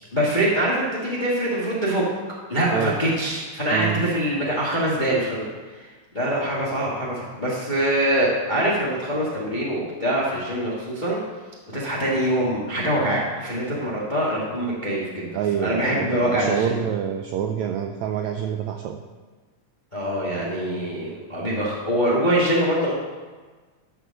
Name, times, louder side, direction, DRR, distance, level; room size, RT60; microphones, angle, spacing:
voice 1, 0.1-2.1 2.5-5.4 5.8-5.9 6.1-11.2 11.7-15.3 15.6-16.8 19.9-22.9, right 1 dB, 35° left, -5 dB, 0.7 m, -24 dB
voice 2, 3.7-4.0 15.3-19.0, right 8 dB, 85° right, 4 dB, 1.6 m, -26 dB
12.5 x 4.6 x 6.3 m, 1.4 s
omnidirectional pair, 3.8 m